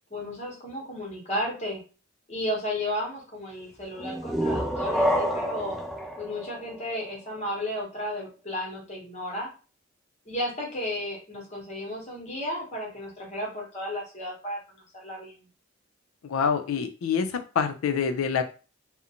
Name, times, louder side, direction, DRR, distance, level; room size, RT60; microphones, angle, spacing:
voice 1, 0.1-1.8 2.3-5.8 6.2-9.5 10.3-15.3, left 1 dB, 35° left, -1 dB, 0.9 m, -33 dB
sound 1, 4.0-7.5, equal, ahead, 0.4 m, -29 dB
voice 2, 16.2-18.4, left 6 dB, 90° left, 9 dB, 0.4 m, -26 dB
2.5 x 2.1 x 2.8 m, 0.34 s
head